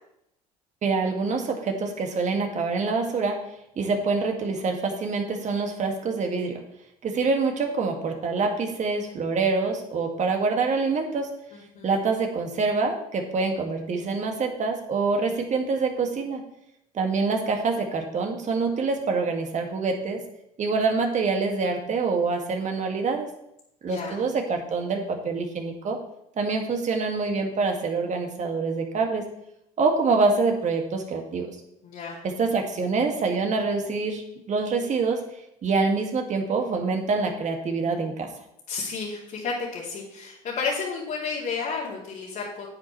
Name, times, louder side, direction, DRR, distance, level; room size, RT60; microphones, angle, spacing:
voice 1, 0.8-3.4 3.8-6.6 7.0-11.3 11.8-16.4 16.9-20.2 20.6-23.3 23.8-26.0 26.4-29.2 29.8-31.5 32.2-35.2 35.6-38.3, right 4 dB, 40° right, 3 dB, 2.1 m, -26 dB
voice 2, 11.5-12.1 23.9-24.2 31.8-32.2 38.7-42.7, left 5 dB, 50° left, -8 dB, 2.9 m, -32 dB
10.0 x 8.8 x 3.2 m, 0.80 s
hypercardioid pair, 75°, 19 cm